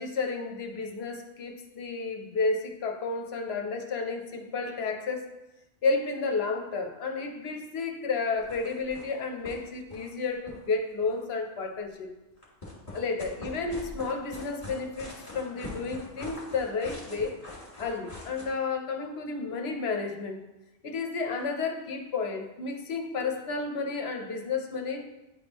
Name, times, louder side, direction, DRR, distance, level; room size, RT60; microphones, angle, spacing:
voice 1, 0.0-5.3 5.8-12.1 12.9-17.4 17.8-20.4 20.8-25.1, left 4 dB, 70° left, 4 dB, 1.0 m, -31 dB
sound 1, 8.4-9.1 9.4-9.6 9.8-11.2 12.4-18.5, left 2 dB, 35° left, 1.8 m, -43 dB
9.7 x 3.6 x 2.9 m, 0.99 s
omnidirectional pair, 1.1 m